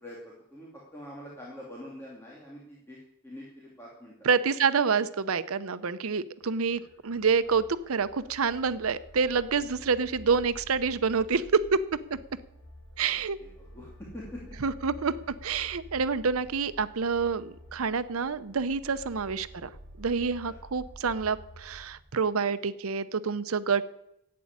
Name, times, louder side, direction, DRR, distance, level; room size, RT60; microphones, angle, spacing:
voice 1, 0.0-3.0 3.2-4.3 13.4-14.6 18.8-19.0 20.5-20.6, left 1 dB, 10° left, -5 dB, 2.6 m, -45 dB
voice 2, 4.2-11.8 13.0-13.4 14.6-15.1 15.4-19.7 20.0-23.8, right 5 dB, 90° right, 14 dB, 0.7 m, -27 dB
sound 1, 6.4-22.0, equal, 65° left, 3.5 m, -50 dB
11.5 x 8.5 x 9.6 m, 0.81 s
head